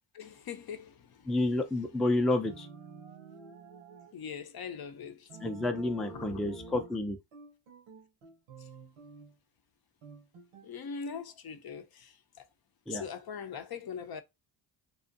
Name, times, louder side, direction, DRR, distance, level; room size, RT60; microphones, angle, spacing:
voice 1, 0.1-1.3 4.1-5.3 6.1-6.4 6.7-6.8 8.6-8.7 10.6-12.4 12.9-14.2, left 6 dB, 50° left, 0.5 m, -42 dB
voice 2, 1.3-2.7 5.4-7.2 12.9-13.0, left 2 dB, ahead, 0.4 m, -30 dB
sound 1, 2.4-4.2 5.3-7.0 7.3-9.3 10.0-10.7, right 4 dB, 90° right, 0.8 m, -49 dB
2.6 x 2.4 x 2.5 m
cardioid pair, 60°, 50 cm